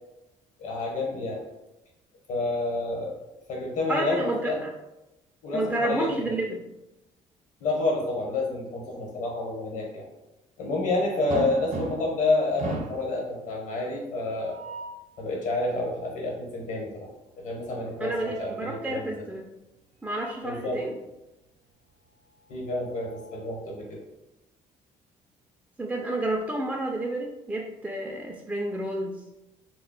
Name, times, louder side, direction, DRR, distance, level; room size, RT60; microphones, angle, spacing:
voice 1, 0.6-1.4 2.3-3.2 3.5-4.6 5.4-6.3 7.6-10.1 10.6-14.6 15.2-17.1 17.4-19.2 20.4-20.8 22.5-24.0, left 2 dB, 60° left, -1 dB, 1.0 m, -29 dB
voice 2, 3.9-4.7 5.5-6.7 18.0-19.5 20.0-21.0 25.8-29.2, right 1 dB, 10° right, 0 dB, 0.3 m, -30 dB
sound 1, 11.3-12.2 12.6-13.1 14.3-15.1 17.7-18.7 20.2-20.3 20.7-20.8 22.3-23.6, right 3 dB, 60° right, 0.6 m, -37 dB
2.2 x 2.0 x 3.7 m, 0.96 s
cardioid pair, 85°, 14 cm